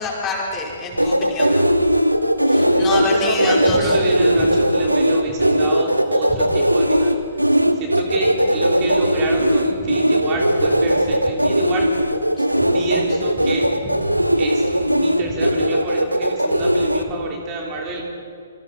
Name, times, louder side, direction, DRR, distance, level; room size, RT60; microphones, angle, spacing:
voice 1, 0.0-1.6 2.5-4.0 12.4-12.5, left 4 dB, 20° left, -3 dB, 5.3 m, -26 dB
sound 1, 1.0-17.0, equal, 90° right, 1.4 m, -18 dB
voice 2, 2.6-11.9 12.6-18.0, right 4 dB, 25° right, -1 dB, 3.4 m, -28 dB
28.0 x 26.5 x 4.3 m, 2.2 s
figure-of-eight pair, 120°, 0 cm